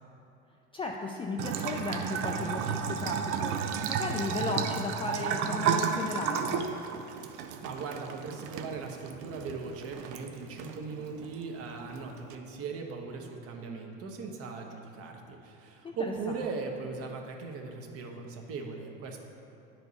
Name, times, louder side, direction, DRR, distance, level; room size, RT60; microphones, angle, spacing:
voice 1, 0.7-6.7 15.8-16.1, left 3 dB, 15° left, 0 dB, 0.4 m, -35 dB
Bathtub (filling or washing) / Trickle dribble, 1.4-12.3, right 7 dB, 70° right, 0.6 m, -33 dB
voice 2, 7.4-19.2, right 4 dB, 50° right, 2 dB, 1.1 m, -39 dB
9.4 x 4.6 x 4.1 m, 2.7 s
supercardioid pair, 100°, 31 cm